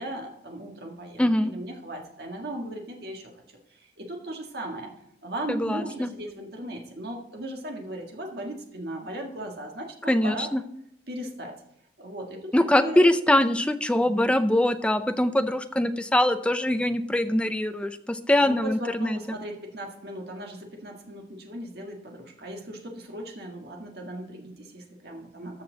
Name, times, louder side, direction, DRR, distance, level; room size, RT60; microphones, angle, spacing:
voice 1, 0.0-3.3 3.7-4.9 5.2-10.5 11.1-11.5 12.0-13.1 13.9-14.3 18.4-25.6, right 1 dB, 55° right, 2 dB, 1.8 m, -37 dB
voice 2, 1.2-1.5 5.5-6.1 10.1-10.6 12.5-19.4, left 1 dB, 5° left, 9 dB, 0.5 m, -23 dB
13.5 x 5.9 x 3.9 m, 0.76 s
head